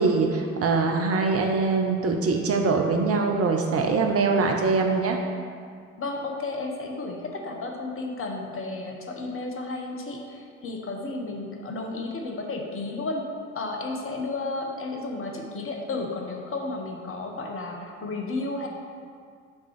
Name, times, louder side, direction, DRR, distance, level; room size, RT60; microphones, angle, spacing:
voice 1, 0.0-5.2, right 4 dB, 35° right, 2 dB, 0.7 m, -23 dB
voice 2, 6.0-13.2 13.5-18.7, left 3 dB, 30° left, 1 dB, 1.1 m, -33 dB
6.2 x 3.8 x 5.8 m, 2.2 s
figure-of-eight pair, 55°, 40 cm